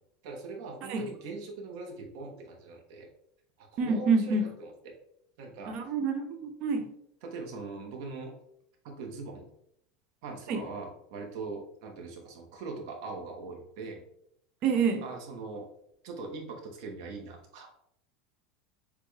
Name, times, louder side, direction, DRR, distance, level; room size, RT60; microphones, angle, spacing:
voice 1, 0.2-3.1 3.6-4.9 5.4-5.8 7.2-8.3 8.8-9.5 10.2-14.0 15.0-15.7 16.0-17.7, right 3 dB, 55° right, 1 dB, 1.1 m, -41 dB
voice 2, 3.8-4.4 5.7-6.9 10.5-10.6 14.6-15.1, right 4 dB, 35° right, 6 dB, 0.6 m, -27 dB
6.6 x 2.4 x 3.2 m, 0.74 s
supercardioid pair, 180°, 3 cm